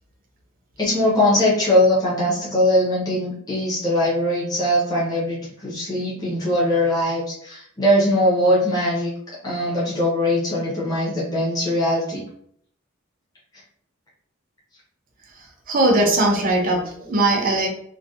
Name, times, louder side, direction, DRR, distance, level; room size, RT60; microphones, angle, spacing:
voice 1, 0.8-9.1 9.4-12.2, left 1 dB, 20° left, -7 dB, 0.7 m, -21 dB
voice 2, 15.7-17.7, right 2 dB, 40° right, 1 dB, 0.5 m, -19 dB
2.6 x 2.1 x 2.3 m, 0.65 s
head